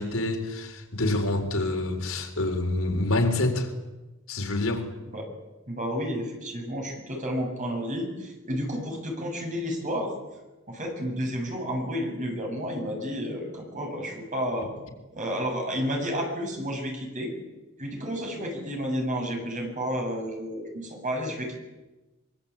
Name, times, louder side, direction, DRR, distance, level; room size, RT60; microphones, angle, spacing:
voice 1, 0.0-3.7 4.3-4.9, left 2 dB, 70° left, 4.1 m, -27 dB
voice 2, 5.7-10.1 10.7-14.7 15.1-17.3 17.8-21.5, equal, 35° right, 7.8 m, -31 dB
25.0 x 23.5 x 8.8 m
head